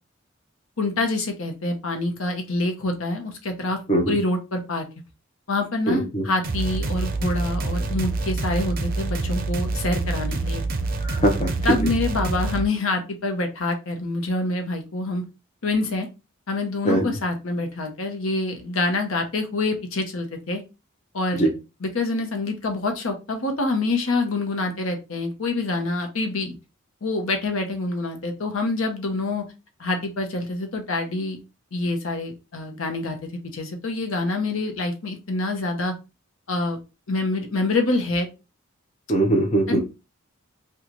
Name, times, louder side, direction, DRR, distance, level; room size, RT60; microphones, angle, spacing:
voice 1, 0.8-3.8 4.1-4.9 5.5-10.6 11.6-15.2 15.6-16.1 16.5-20.6 21.1-21.5 21.8-26.5 27.0-29.4 29.8-31.4 31.7-35.9 36.5-36.8 37.1-38.3 39.7-39.8, left 2 dB, 80° left, 5 dB, 0.8 m, -26 dB
voice 2, 5.9-6.2 11.0-11.6 16.9-17.0 21.3-21.5 39.1-39.8, right 1 dB, 35° left, 2 dB, 0.7 m, -21 dB
sound 1, 6.4-12.6, right 3 dB, 45° right, 0.5 m, -26 dB
3.0 x 2.3 x 3.8 m, 0.28 s
head